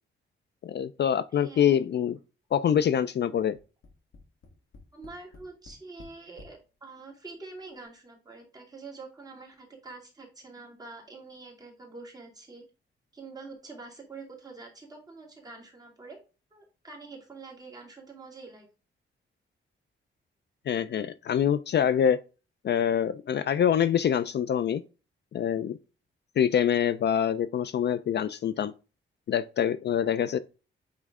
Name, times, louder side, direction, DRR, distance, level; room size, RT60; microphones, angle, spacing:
voice 1, 0.6-2.2 2.5-3.6 20.7-22.2 22.6-24.8 25.3-25.8 26.4-28.7 29.3-30.4, left 9 dB, 55° left, 0.4 m, -25 dB
voice 2, 1.3-1.8 4.9-12.6 13.1-16.2 16.5-18.7, right 3 dB, 20° right, 2.4 m, -46 dB
Tap, 3.6-6.6 7.4-7.5 7.8-7.9, left 3 dB, 80° left, 1.6 m, -52 dB
8.4 x 3.1 x 3.6 m
wide cardioid pair, 130°, 21 cm